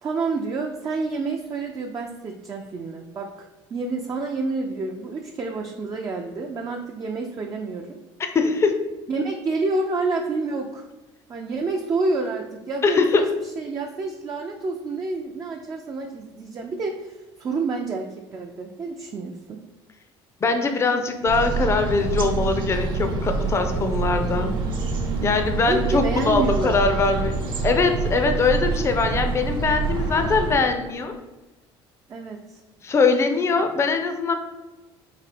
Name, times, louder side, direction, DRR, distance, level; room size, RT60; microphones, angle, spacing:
voice 1, 0.0-7.9 9.1-10.9 11.3-13.3 13.6-19.6 25.6-27.2 32.1-32.6, right 3 dB, 30° right, 1 dB, 0.4 m, -28 dB
voice 2, 8.3-8.8 12.8-13.3 20.4-24.6 25.2-27.3 27.6-31.2 32.8-34.3, left 4 dB, 25° left, 6 dB, 0.5 m, -22 dB
sound 1, 21.3-30.5, right 4 dB, 50° right, 1.0 m, -26 dB
4.2 x 2.7 x 4.2 m, 1.1 s
cardioid pair, 125°, 10 cm